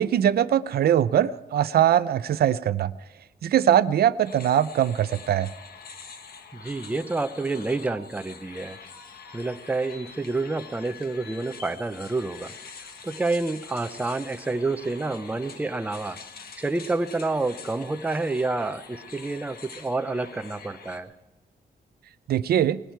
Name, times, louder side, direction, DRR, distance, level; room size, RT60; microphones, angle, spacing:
voice 1, 0.0-2.9 3.4-5.5 22.3-22.8, right 10 dB, 65° right, 15 dB, 0.5 m, -21 dB
sound 1, 4.2-21.0, left 5 dB, 65° left, 1.4 m, -45 dB
voice 2, 6.5-8.8 9.3-12.5 13.0-16.2 16.6-21.1, right 3 dB, 10° right, 9 dB, 0.5 m, -28 dB
19.5 x 14.5 x 4.6 m, 1.1 s
wide cardioid pair, 170°, 17 cm